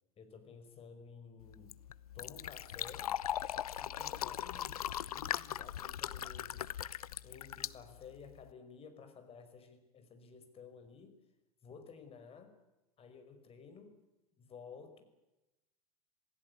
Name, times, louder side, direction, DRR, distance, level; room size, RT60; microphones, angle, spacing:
voice 1, 0.2-1.8 2.1-3.2 3.7-6.7 7.2-11.2 11.6-12.5 13.0-14.0 14.4-15.0, left 5 dB, 30° left, 7 dB, 5.4 m, -54 dB
Fill (with liquid), 1.4-8.5, left 10 dB, 70° left, 0.8 m, -40 dB
27.0 x 18.0 x 8.6 m, 0.98 s
figure-of-eight pair, 80°, 19 cm